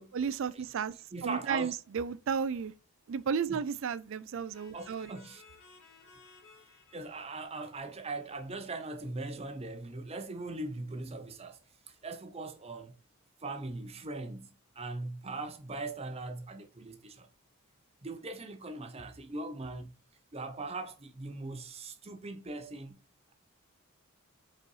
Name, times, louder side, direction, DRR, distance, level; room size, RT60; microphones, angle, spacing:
voice 1, 0.1-0.9 1.2-2.7 3.1-5.2, right 6 dB, 60° right, 0.4 m, -33 dB
voice 2, 1.1-1.7 3.5-3.6 4.7-5.4 6.9-11.6 11.9-12.9 13.4-14.5 14.8-17.3 18.0-19.9 20.3-23.0, right 2 dB, 30° right, 0.7 m, -40 dB
sound 1, 4.5-9.1, left 4 dB, 65° left, 2.6 m, -59 dB
5.3 x 4.1 x 4.7 m
head